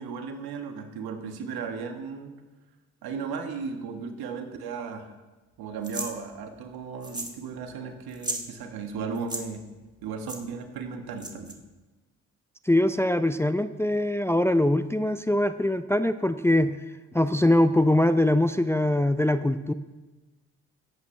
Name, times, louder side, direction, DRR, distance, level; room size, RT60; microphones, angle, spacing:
voice 1, 0.0-2.3 3.0-5.1 5.6-9.6 10.0-11.5, right 5 dB, 75° right, 5 dB, 1.5 m, -35 dB
sound 1, 5.8-6.1 7.0-7.4 7.7-7.8 8.1-8.5 9.1-9.4 10.3-10.4 11.2-11.5, right 2 dB, 10° right, 1.6 m, -34 dB
voice 2, 12.7-16.7 17.1-19.7, left 1 dB, 5° left, 11 dB, 0.5 m, -22 dB
17.0 x 8.4 x 3.3 m, 1.2 s
hypercardioid pair, 50°, 37 cm